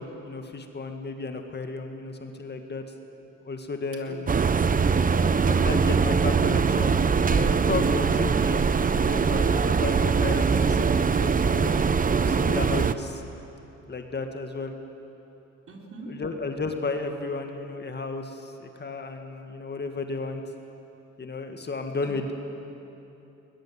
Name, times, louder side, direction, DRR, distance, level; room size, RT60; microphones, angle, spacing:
voice 1, 0.0-2.8 3.5-4.3 5.5-8.7 8.9-13.2 13.9-14.7 16.1-20.4 21.2-22.3, left 3 dB, 35° left, 5 dB, 1.9 m, -33 dB
voice 2, 4.0-5.5 15.7-16.1 22.0-22.3, right 3 dB, 45° right, 1 dB, 3.8 m, -43 dB
sound 1, 4.3-12.9, right 5 dB, 30° right, 0.8 m, -22 dB
21.0 x 21.0 x 7.7 m, 3.0 s
cardioid pair, 90°, 30 cm